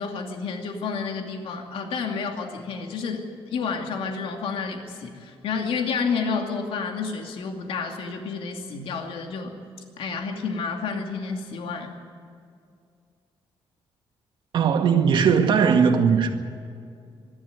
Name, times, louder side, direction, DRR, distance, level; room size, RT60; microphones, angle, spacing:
voice 1, 0.0-3.2 3.5-9.5 10.0-12.0, left 5 dB, 75° left, 2.6 m, -30 dB
voice 2, 14.5-16.3, right 6 dB, 55° right, 2.0 m, -19 dB
24.5 x 12.0 x 9.4 m
cardioid pair, 165°, 9 cm